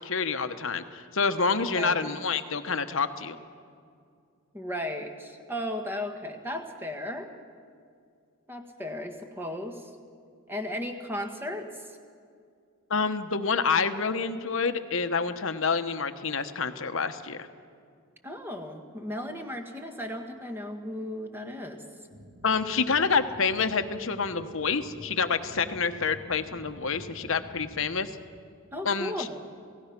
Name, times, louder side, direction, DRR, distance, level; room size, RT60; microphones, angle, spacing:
voice 1, 0.0-3.4 12.9-17.4 22.4-28.1 28.8-29.3, left 5 dB, 60° left, 9 dB, 1.0 m, -28 dB
voice 2, 1.7-2.1 4.5-7.3 8.5-9.9 10.5-11.9 18.2-21.8 28.7-29.4, left 1 dB, 10° right, 4 dB, 1.6 m, -35 dB
sound 1, 22.1-27.9, right 1 dB, 80° right, 3.6 m, -49 dB
28.5 x 17.0 x 6.0 m, 2.3 s
head